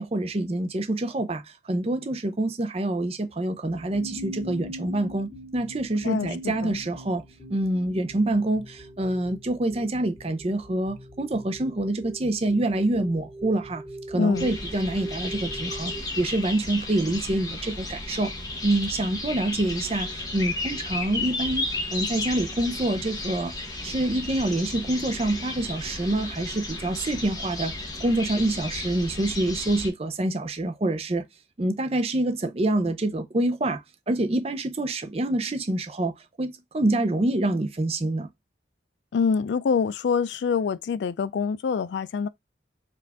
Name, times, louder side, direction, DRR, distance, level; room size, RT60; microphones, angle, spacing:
voice 1, 0.0-1.4 1.7-7.2 7.5-13.8 14.1-18.3 18.6-21.7 21.9-23.5 23.8-27.7 28.0-31.2 31.6-33.8 34.1-36.1 36.4-38.3, right 1 dB, 30° right, 0.5 m, -26 dB
sound 1, 3.7-16.0, right 1 dB, ahead, 1.3 m, -42 dB
voice 2, 6.0-6.8 14.1-14.5 39.1-42.3, left 5 dB, 70° left, 0.3 m, -25 dB
sound 2, 14.3-29.9, left 2 dB, 20° left, 0.9 m, -33 dB
4.7 x 2.5 x 3.4 m
head